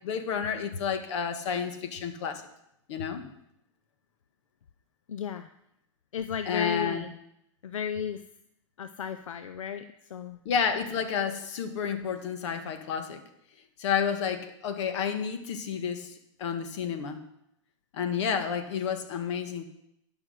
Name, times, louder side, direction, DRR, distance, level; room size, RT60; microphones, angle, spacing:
voice 1, 0.0-2.4 2.9-3.3 6.4-7.0 10.4-13.2 13.8-16.1 16.4-17.2 17.9-19.6, left 7 dB, 65° left, 8 dB, 1.5 m, -30 dB
voice 2, 5.1-5.5 6.1-7.1 7.6-8.2 8.8-9.8 10.1-10.4, left 8 dB, 85° left, 10 dB, 0.5 m, -34 dB
11.0 x 6.0 x 6.4 m, 0.79 s
hypercardioid pair, 115°, 16 cm